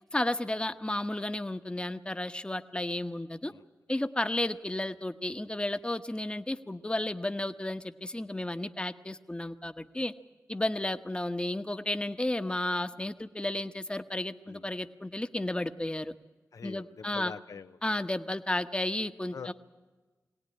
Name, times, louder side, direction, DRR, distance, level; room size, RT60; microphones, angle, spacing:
voice 1, 0.1-3.5 3.9-10.1 10.5-16.1 16.6-17.3 17.8-19.5, left 1 dB, 15° left, 9 dB, 1.1 m, -33 dB
voice 2, 16.5-17.8 19.3-19.5, left 5 dB, 80° left, 11 dB, 0.8 m, -44 dB
22.0 x 17.5 x 9.9 m, 1.3 s
cardioid pair, 55°, 6 cm